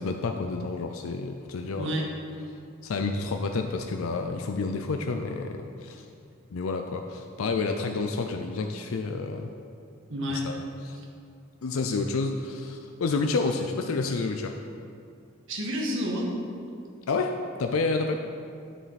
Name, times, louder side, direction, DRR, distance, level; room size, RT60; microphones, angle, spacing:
voice 1, 0.0-2.0 2.8-6.0 6.5-9.5 10.3-11.0 11.6-14.6 17.1-18.2, left 3 dB, 80° left, 5 dB, 0.5 m, -29 dB
voice 2, 10.1-10.4 15.5-16.3, equal, 65° right, -1 dB, 1.5 m, -29 dB
9.3 x 7.4 x 4.1 m, 2.4 s
head